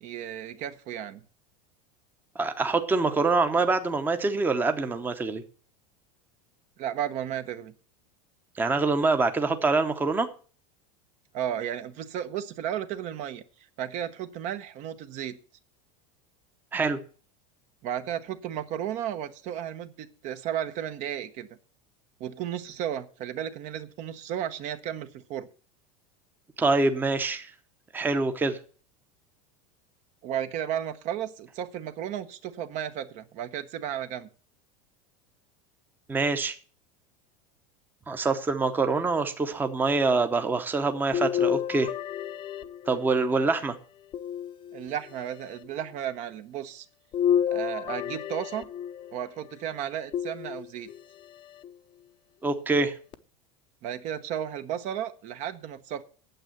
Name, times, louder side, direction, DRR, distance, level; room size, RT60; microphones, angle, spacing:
voice 1, 0.0-1.2 6.8-7.7 11.3-13.4 13.8-15.4 17.8-21.5 22.2-25.5 30.2-34.3 44.7-46.9 47.5-48.7 49.1-50.9 53.8-56.0, right 10 dB, 45° right, 0.9 m, -34 dB
voice 2, 2.3-5.4 8.6-10.3 16.7-17.0 26.6-27.5 27.9-28.6 36.1-36.6 38.1-41.9 42.9-43.8 52.4-53.0, right 3 dB, 10° right, 0.8 m, -25 dB
sound 1, 41.1-43.4 44.1-45.1 47.1-49.2 50.1-51.0 51.6-51.7 53.1-53.2, left 9 dB, 30° left, 0.7 m, -30 dB
9.0 x 7.5 x 7.8 m
supercardioid pair, 145°, 17 cm